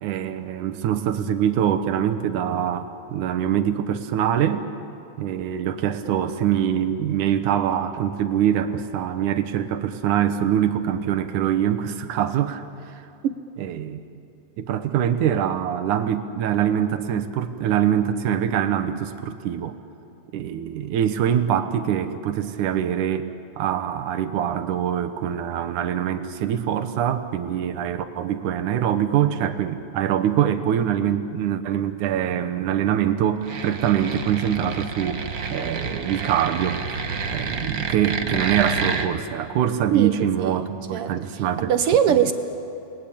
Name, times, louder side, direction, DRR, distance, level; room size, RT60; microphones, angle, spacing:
voice 1, 0.0-4.6 5.2-12.9 13.6-14.0 14.6-19.7 20.3-23.3 23.6-35.3 35.5-36.8 37.3-41.7 42.1-42.3, right 9 dB, 85° right, 10 dB, 2.6 m, -24 dB
sound 1, 33.4-39.1, right 5 dB, 55° right, 1.0 m, -29 dB
voice 2, 39.9-40.6 40.9-41.1 41.6-42.3, right 9 dB, 70° right, 9 dB, 1.4 m, -21 dB
28.5 x 20.5 x 8.7 m, 2.7 s
omnidirectional pair, 3.5 m